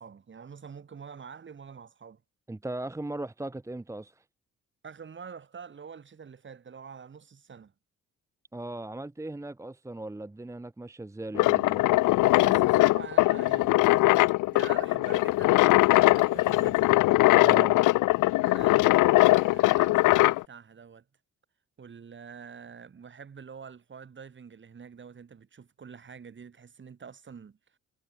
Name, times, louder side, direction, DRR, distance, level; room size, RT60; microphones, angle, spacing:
voice 1, 0.0-2.2 4.8-7.7 12.4-13.9 14.5-16.9 18.4-21.0 21.8-27.6, right 6 dB, 40° right, 2.8 m, -46 dB
voice 2, 2.5-4.2 8.5-11.8 17.4-17.8, right 2 dB, 10° right, 0.8 m, -38 dB
sound 1, 11.3-20.4, left 19 dB, 85° left, 0.6 m, -21 dB
cardioid pair, 90°, 30 cm